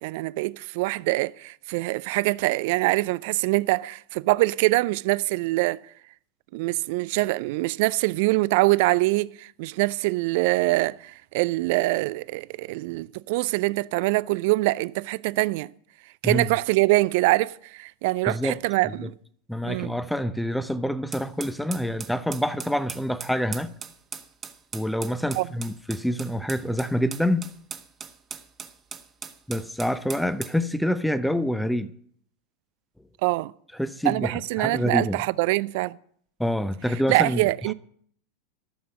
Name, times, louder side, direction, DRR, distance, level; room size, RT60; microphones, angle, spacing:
voice 1, 0.0-5.8 6.5-15.7 16.2-19.1 19.6-20.0 25.4-25.5 33.2-33.5 34.0-36.0 37.1-37.7, right 21 dB, 60° right, 0.4 m, -24 dB
voice 2, 18.3-18.6 18.9-19.1 19.5-23.7 24.7-27.5 29.5-31.9 33.8-35.2 36.4-37.4, equal, ahead, 0.7 m, -26 dB
sound 1, 21.1-30.6, right 6 dB, 25° right, 1.2 m, -40 dB
13.0 x 6.9 x 7.6 m
hypercardioid pair, 90°, 0 cm